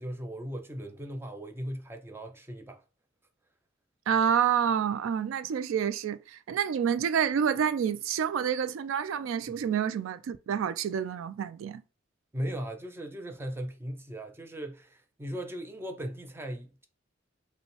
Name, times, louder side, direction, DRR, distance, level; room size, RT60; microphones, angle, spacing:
voice 1, 0.0-2.8 12.3-16.9, equal, 10° right, 0.5 m, -38 dB
voice 2, 4.1-11.8, right 8 dB, 85° right, 0.3 m, -28 dB
5.2 x 2.1 x 3.1 m
head